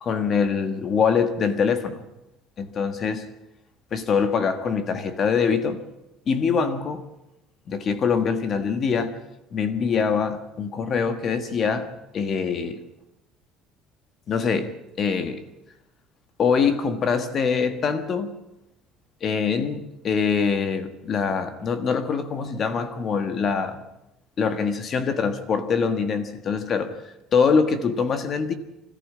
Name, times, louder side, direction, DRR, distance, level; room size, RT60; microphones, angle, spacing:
voice 1, 0.0-2.0 2.6-3.3 3.9-5.8 6.3-7.0 7.7-9.2 9.5-12.8 14.3-15.4 16.4-18.4 19.2-23.8 24.4-27.0 27.3-28.5, left 5 dB, 30° left, 1.5 m, -24 dB
25.0 x 14.0 x 8.6 m
cardioid pair, 175°, 0 cm